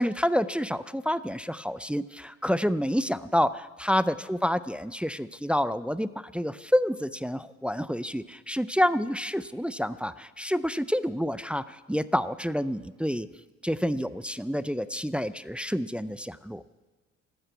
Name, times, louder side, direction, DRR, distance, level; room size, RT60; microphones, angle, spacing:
voice 1, 0.0-13.3 13.6-16.6, equal, 5° right, 14 dB, 0.4 m, -28 dB
13.5 x 12.5 x 8.1 m, 1.3 s
cardioid pair, 90°, 30 cm